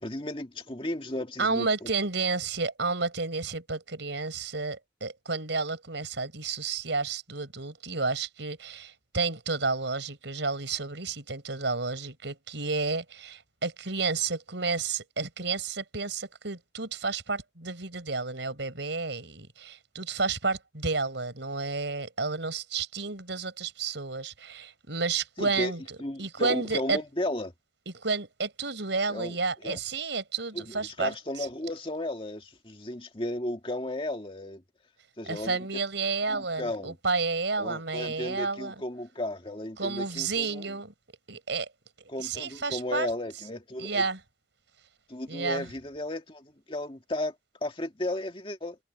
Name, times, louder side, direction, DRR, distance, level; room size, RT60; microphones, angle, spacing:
voice 1, 0.0-1.9 25.4-25.7 26.0-27.5 29.1-29.4 29.6-29.8 30.5-34.6 35.2-35.7 36.2-36.9 37.6-40.8 42.1-44.0 45.1-47.3 47.6-48.8, left 1 dB, 30° left, 2.0 m, -34 dB
voice 2, 1.4-25.8 26.2-27.0 27.9-31.5 35.3-38.7 39.8-40.9 41.3-41.7 42.2-43.1 43.8-44.2 45.3-45.7, right 4 dB, 80° right, 4.4 m, -31 dB
head